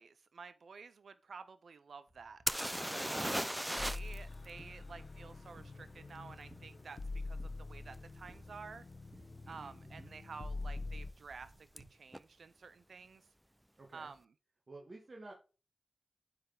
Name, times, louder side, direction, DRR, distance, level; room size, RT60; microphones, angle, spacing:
voice 1, 0.0-2.6 3.1-8.8 9.5-13.2 13.9-14.3, right 5 dB, 80° right, 0.4 m, -51 dB
sound 1, 2.1-11.9, right 1 dB, 30° right, 2.4 m, -62 dB
sound 2, 2.5-4.2 4.4-4.5 7.9-8.0 8.7-8.9 9.1-9.7 11.8-11.9 12.1-12.2, equal, 5° right, 0.4 m, -36 dB
voice 2, 2.9-3.3 9.4-10.1 13.8-14.1 14.7-15.3, right 2 dB, 50° right, 1.6 m, -52 dB
sound 3, 3.8-11.1, left 3 dB, 60° left, 1.1 m, -45 dB
9.5 x 4.0 x 3.9 m
cardioid pair, 40°, 0 cm